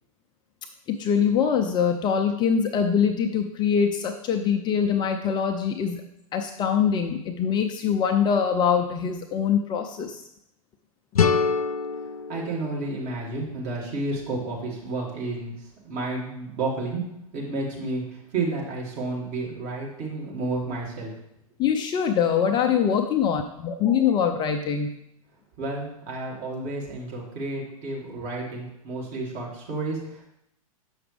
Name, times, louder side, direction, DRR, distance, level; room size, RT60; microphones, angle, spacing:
voice 1, 0.9-6.0 6.3-10.3 21.6-24.9, left 7 dB, 25° left, 6 dB, 0.5 m, -23 dB
sound 1, 11.1-14.0, left 6 dB, 80° left, 0.5 m, -27 dB
voice 2, 12.3-17.0 17.3-21.1 25.6-30.3, right 2 dB, 40° right, -3 dB, 2.3 m, -31 dB
7.1 x 5.9 x 3.4 m, 0.79 s
figure-of-eight pair, 100°, 19 cm